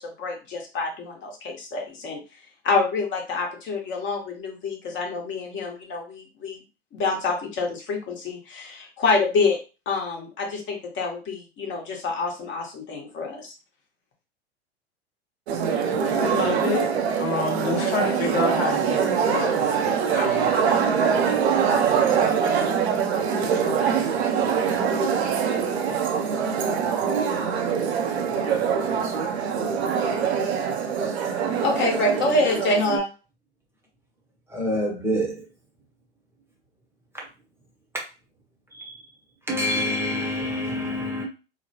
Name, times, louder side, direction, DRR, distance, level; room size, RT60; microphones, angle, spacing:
voice 1, 0.2-2.2 2.6-6.6 6.9-9.6 9.9-13.5 31.6-33.1, left 3 dB, 35° left, 1.1 m, -26 dB
sound 1, 15.5-33.0, right 7 dB, 75° right, 0.6 m, -23 dB
voice 2, 16.1-16.9 17.2-21.2, left 5 dB, 70° left, 0.7 m, -29 dB
voice 3, 34.5-35.4 38.7-39.0 39.5-41.2, left 1 dB, 5° right, 0.8 m, -26 dB
2.9 x 2.1 x 2.8 m
hypercardioid pair, 90°, 33 cm